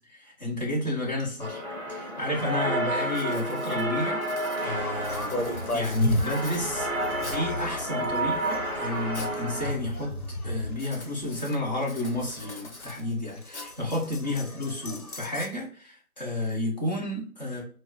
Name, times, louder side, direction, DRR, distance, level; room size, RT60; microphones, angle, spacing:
voice 1, 0.2-1.6 1.9-6.9 7.3-10.1 10.4-17.6, left 1 dB, 30° left, -4 dB, 1.0 m, -31 dB
sound 1, 1.4-9.7, right 1 dB, 10° left, 1.2 m, -31 dB
Writing, 1.9-2.0 2.5-2.7 3.0-7.6 8.2-9.4 9.7-10.1 10.7-14.1, left 2 dB, 55° left, 0.7 m, -45 dB
sound 2, 4.8-15.5, left 1 dB, 85° left, 0.9 m, -34 dB
4.5 x 2.1 x 2.9 m, 0.44 s
figure-of-eight pair, 155°, 43 cm